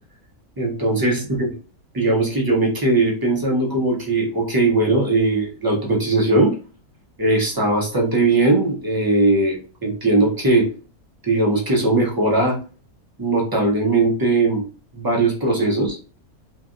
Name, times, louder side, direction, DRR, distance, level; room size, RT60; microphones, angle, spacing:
voice 1, 0.6-1.5 1.9-6.5 7.2-10.7 11.2-12.6 13.2-14.6 14.9-16.0, right 2 dB, 20° right, -2 dB, 0.6 m, -19 dB
3.3 x 2.3 x 2.5 m, 0.36 s
omnidirectional pair, 1.5 m